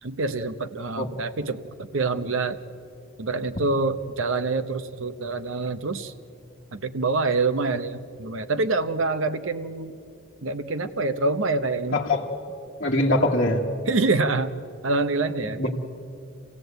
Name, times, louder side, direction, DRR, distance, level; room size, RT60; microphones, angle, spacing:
voice 1, 0.0-2.6 3.2-6.1 6.7-10.0 10.4-12.0 13.9-14.5 14.8-15.7, right 3 dB, 70° right, 11 dB, 0.9 m, -26 dB
voice 2, 11.9-12.3 12.8-13.6 15.6-15.7, left 1 dB, 40° left, -4 dB, 1.5 m, -22 dB
26.5 x 16.5 x 8.1 m, 2.7 s
head